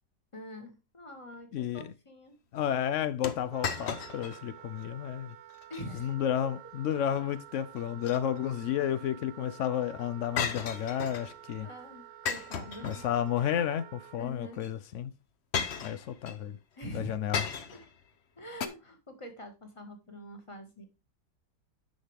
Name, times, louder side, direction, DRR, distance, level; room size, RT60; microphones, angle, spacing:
voice 1, 0.3-2.4 5.7-6.8 11.6-13.1 13.4-13.7 14.1-14.6 16.8-17.2 17.7-17.8 18.4-20.9, equal, 20° left, 1.6 m, -45 dB
voice 2, 1.5-1.8 2.5-5.3 6.0-11.7 12.8-15.1 15.8-16.6 16.9-17.5, left 10 dB, 85° left, 0.6 m, -32 dB
sound 1, 3.2-4.4 4.8-4.9 5.5-5.9 7.8-8.6 10.4-11.4 12.3-13.4 14.6-14.7 15.5-16.4 17.3-17.9 18.6-18.7, left 6 dB, 50° left, 0.9 m, -35 dB
Wind instrument woodwind instrument, 3.5-14.2, right 12 dB, 90° right, 1.3 m, -50 dB
9.6 x 6.4 x 3.5 m
omnidirectional pair, 1.9 m